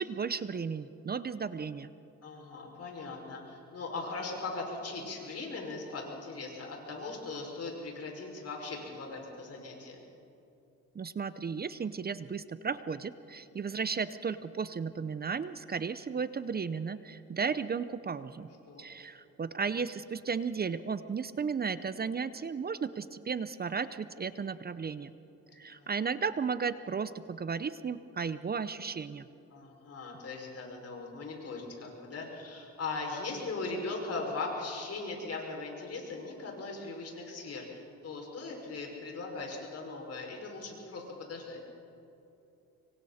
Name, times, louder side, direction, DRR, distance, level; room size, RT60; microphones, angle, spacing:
voice 1, 0.0-1.9 10.9-18.5 18.8-25.1 25.6-29.3, right 5 dB, 30° right, 14 dB, 0.7 m, -34 dB
voice 2, 2.2-10.0 18.4-18.9 25.5-25.9 29.5-41.6, left 3 dB, 55° left, 0 dB, 6.0 m, -39 dB
25.5 x 23.5 x 4.3 m, 2.9 s
cardioid pair, 90°, 30 cm